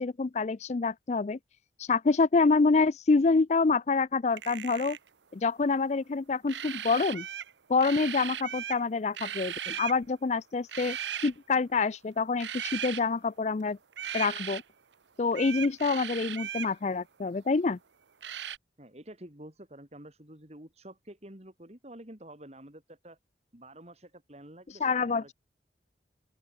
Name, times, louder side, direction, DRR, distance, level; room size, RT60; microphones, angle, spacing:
voice 1, 0.0-1.4 1.8-5.0 5.3-7.3 7.7-11.0 11.2-13.8 14.1-14.6 15.2-17.8 24.8-25.3, left 4 dB, 40° left, 0.4 m, -27 dB
sound 1, 4.3-5.1 6.5-7.5 7.8-8.8 9.1-10.0 10.7-11.3 12.4-13.0 13.9-14.6 15.3-16.7 18.2-18.6, right 10 dB, 80° right, 0.8 m, -37 dB
voice 2, 18.8-23.2 23.5-25.3, right 1 dB, 35° right, 3.1 m, -49 dB
open air
head